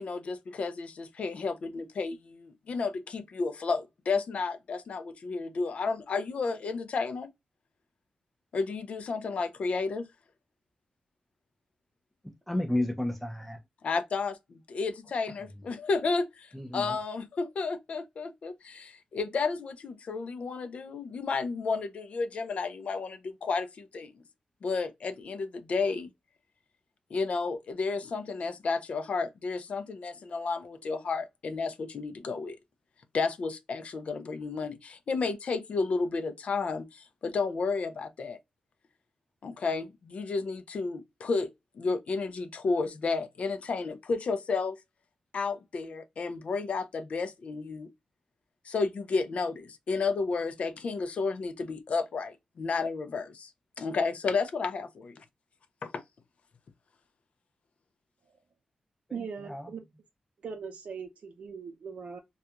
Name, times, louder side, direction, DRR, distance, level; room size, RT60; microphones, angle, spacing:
voice 1, 0.0-7.3 8.5-10.1 13.8-24.1 24.6-26.1 27.1-32.6 33.1-38.4 39.4-44.8 45.3-47.9 48.7-53.5 53.8-55.2 55.8-56.0, left 4 dB, 60° left, 0.4 m, -32 dB
voice 2, 12.2-13.6 15.4-15.5 16.5-17.0 59.1-59.7, left 1 dB, 5° left, 0.6 m, -33 dB
voice 3, 59.1-59.8 60.4-62.2, right 6 dB, 75° right, 0.6 m, -40 dB
2.3 x 2.2 x 2.8 m
wide cardioid pair, 135°, 2 cm